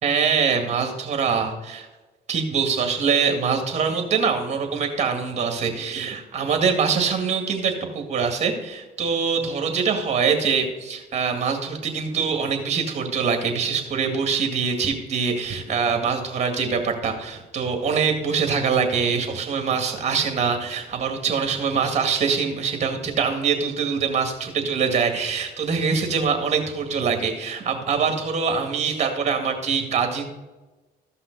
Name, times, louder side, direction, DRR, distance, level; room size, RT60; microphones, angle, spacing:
voice 1, 0.0-1.9 2.3-30.2, right 6 dB, 40° right, 5 dB, 2.1 m, -24 dB
14.5 x 5.6 x 4.0 m, 1.2 s
cardioid pair, 110°, 17 cm